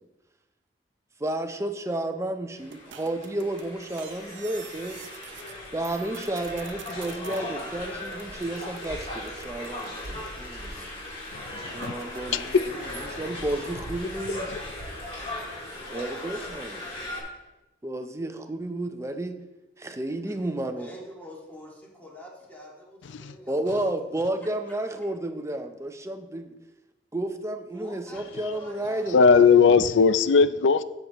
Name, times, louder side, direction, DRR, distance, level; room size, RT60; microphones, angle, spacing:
voice 1, 1.2-5.0 5.7-10.9 11.7-14.5 15.9-16.9 17.8-19.4 19.8-20.9 23.5-26.5 27.1-29.5, right 1 dB, 15° right, 0.6 m, -32 dB
sound 1, 2.6-17.2, left 1 dB, 35° left, 3.2 m, -38 dB
sound 2, 2.7-5.6 5.8-7.4 8.1-11.1 11.8-13.3, right 7 dB, 85° right, 0.7 m, -48 dB
voice 2, 11.3-13.1 14.5-14.6 23.0-23.4 29.1-30.8, left 5 dB, 85° left, 0.4 m, -20 dB
voice 3, 20.8-23.8 27.7-29.6, equal, 10° left, 2.0 m, -45 dB
12.5 x 6.7 x 3.0 m
head